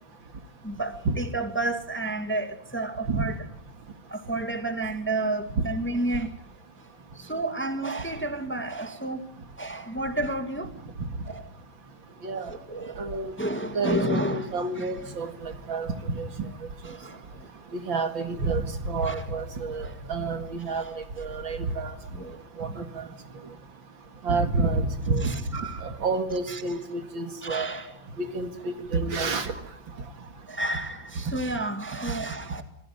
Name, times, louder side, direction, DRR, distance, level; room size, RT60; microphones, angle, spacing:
voice 1, 0.6-3.3 4.1-6.3 7.1-9.3 9.6-10.7 11.3-11.4 12.5-13.0 13.4-14.5 14.7-14.9 16.8-17.5 19.0-19.2 19.8-19.9 22.1-22.4 25.2-25.9 26.5-26.6 27.4-27.9 30.5-32.6, right 2 dB, 5° left, 1.7 m, -31 dB
voice 2, 13.0-13.3 13.7-16.3 17.7-20.8 21.2-21.9 22.6-23.0 24.2-25.3 25.8-27.8 28.2-29.5, right 3 dB, 65° right, 2.8 m, -29 dB
27.0 x 17.5 x 9.2 m
omnidirectional pair, 2.3 m